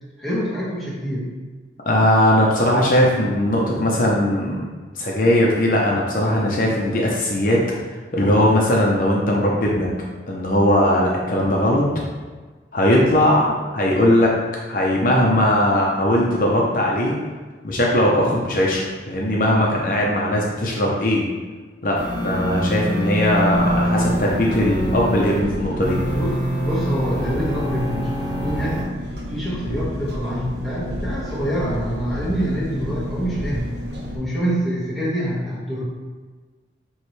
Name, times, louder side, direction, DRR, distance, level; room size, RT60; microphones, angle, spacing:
voice 1, 0.2-1.3 18.2-18.3 26.1-28.8 29.3-33.7 34.1-35.8, equal, ahead, -9 dB, 1.6 m, -26 dB
voice 2, 1.9-4.6 5.0-7.6 8.1-9.9 10.3-11.8 12.7-14.3 14.7-17.1 17.6-21.2 21.8-26.0, left 1 dB, 50° left, -3 dB, 0.8 m, -19 dB
sound 1, 22.0-25.4 25.8-28.8, equal, 25° left, 1.7 m, -25 dB
Engine, 23.5-34.2, equal, 75° right, 1.1 m, -31 dB
9.1 x 3.2 x 3.3 m, 1.4 s
head